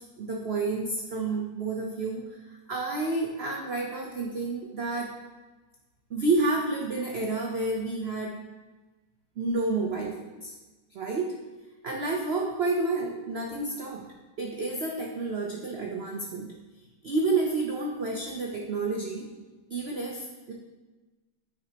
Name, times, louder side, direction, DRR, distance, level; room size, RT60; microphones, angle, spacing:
voice 1, 0.0-5.2 6.1-8.4 9.4-10.5 10.9-11.4 11.8-14.1 14.4-16.5 17.0-19.3 19.7-20.5, right 3 dB, 90° right, 0 dB, 0.5 m, -30 dB
9.1 x 4.8 x 2.8 m, 1.2 s
omnidirectional pair, 2.0 m